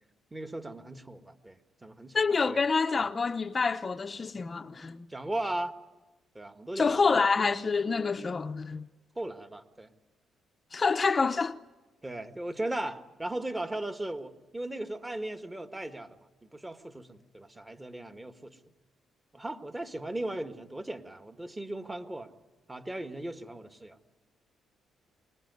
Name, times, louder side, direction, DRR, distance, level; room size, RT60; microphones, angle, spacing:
voice 1, 0.3-2.2 2.5-2.6 5.1-5.7 6.4-7.1 9.2-9.9 12.0-16.2 16.4-18.6 19.3-22.3 22.7-24.0, right 1 dB, 15° right, 1.7 m, -37 dB
voice 2, 2.1-5.1 6.8-8.9 10.7-11.6, left 4 dB, 35° left, 0.8 m, -27 dB
25.0 x 20.5 x 9.6 m
cardioid pair, 90°, 0 cm